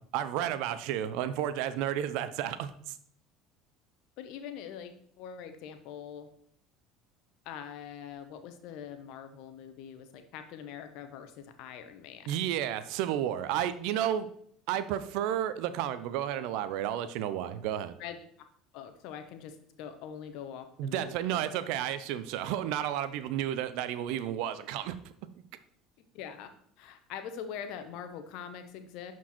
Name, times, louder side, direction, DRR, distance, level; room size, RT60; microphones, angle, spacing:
voice 1, 0.1-3.0 12.3-14.3 14.7-18.0 20.8-24.9, right 11 dB, 65° right, 13 dB, 0.7 m, -32 dB
voice 2, 4.2-6.3 7.4-12.5 18.0-18.2 18.7-21.5 26.1-26.5 26.8-29.1, left 8 dB, 65° left, 8 dB, 1.1 m, -43 dB
11.0 x 4.6 x 4.4 m, 0.66 s
hypercardioid pair, 70°, 0 cm